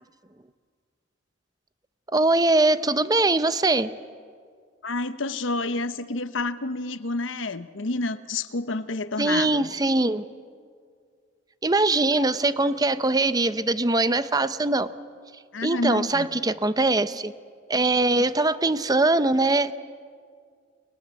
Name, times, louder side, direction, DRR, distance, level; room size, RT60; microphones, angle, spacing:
voice 1, 2.1-3.9 9.2-10.2 11.6-14.9 15.6-17.3 17.7-19.7, right 2 dB, 20° right, 13 dB, 0.8 m, -22 dB
voice 2, 4.8-9.7 15.5-16.4 18.2-18.3, left 2 dB, 75° left, 12 dB, 1.1 m, -29 dB
30.0 x 21.5 x 8.3 m, 2.1 s
head